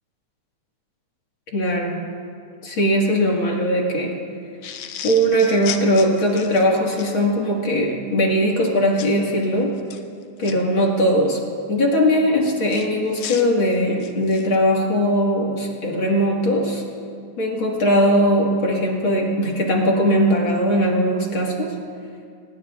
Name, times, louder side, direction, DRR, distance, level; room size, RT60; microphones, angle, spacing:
voice 1, 1.5-2.0 2.6-4.1 5.0-9.7 10.4-11.4 11.7-16.8 17.4-21.8, equal, 45° left, -2 dB, 2.2 m, -20 dB
sound 1, 4.6-7.1 9.0-9.2 9.8-10.5 12.7-14.6, left 9 dB, 75° left, 1.3 m, -35 dB
26.0 x 19.5 x 2.4 m, 2.4 s
omnidirectional pair, 3.6 m